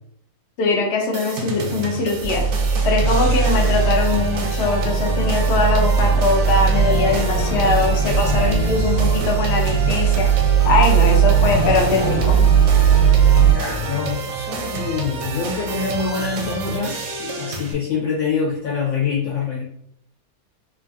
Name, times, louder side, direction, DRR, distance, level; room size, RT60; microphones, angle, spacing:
voice 1, 0.6-2.5 2.8-10.3 10.6-12.4, left 3 dB, 80° left, 0 dB, 0.5 m, -21 dB
sound 1, 1.1-17.7, right 2 dB, 90° right, 1.2 m, -29 dB
sound 2, 2.2-13.5, right 6 dB, 45° left, 0.7 m, -18 dB
voice 2, 13.4-19.6, left 5 dB, 65° left, -6 dB, 1.0 m, -25 dB
3.1 x 2.4 x 2.5 m, 0.69 s
omnidirectional pair, 1.8 m